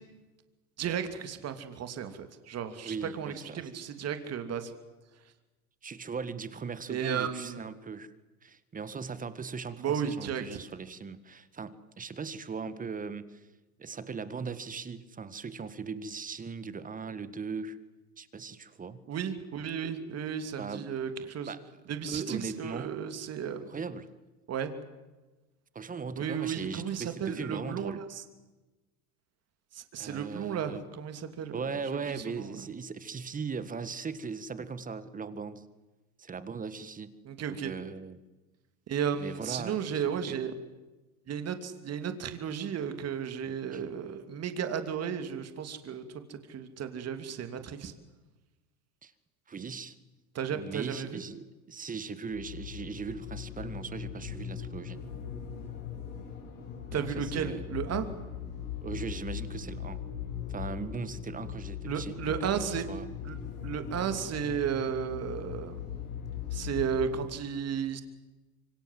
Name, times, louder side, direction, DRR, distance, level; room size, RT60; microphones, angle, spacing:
voice 1, 0.8-4.7 6.9-7.7 9.8-10.4 19.1-21.5 21.9-23.7 24.5-24.7 26.2-28.2 29.7-31.6 31.9-32.5 37.2-37.7 38.9-40.5 41.3-47.9 50.3-51.2 56.9-58.1 61.9-62.9 63.2-65.8 66.5-68.0, right 8 dB, 35° right, 8 dB, 3.0 m, -34 dB
voice 2, 2.8-3.7 5.8-8.1 8.4-13.5 13.8-17.8 18.2-19.0 20.6-20.9 21.5-23.0 23.7-24.1 25.8-28.0 30.0-30.8 31.5-35.6 36.2-37.1 37.5-38.2 39.1-40.4 43.7-43.8 49.0-49.1 49.5-50.0 50.5-55.0 56.9-57.7 58.8-60.0 60.5-63.1, right 5 dB, 15° right, 14 dB, 1.7 m, -39 dB
sound 1, 52.3-67.2, left 8 dB, 80° left, 8.0 m, -39 dB
26.5 x 24.5 x 7.8 m, 1.1 s
hypercardioid pair, 105°, 46 cm